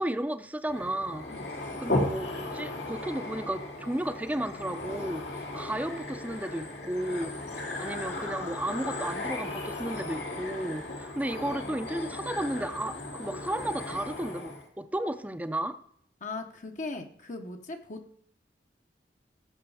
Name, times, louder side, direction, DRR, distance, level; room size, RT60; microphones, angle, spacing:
voice 1, 0.0-1.3 1.8-15.8, right 1 dB, 10° right, 10 dB, 0.6 m, -33 dB
sound 1, 0.7-14.6, left 2 dB, 85° left, 2.5 m, -36 dB
voice 2, 16.2-18.2, left 3 dB, 45° left, 4 dB, 1.0 m, -39 dB
17.5 x 7.3 x 4.9 m, 0.66 s
head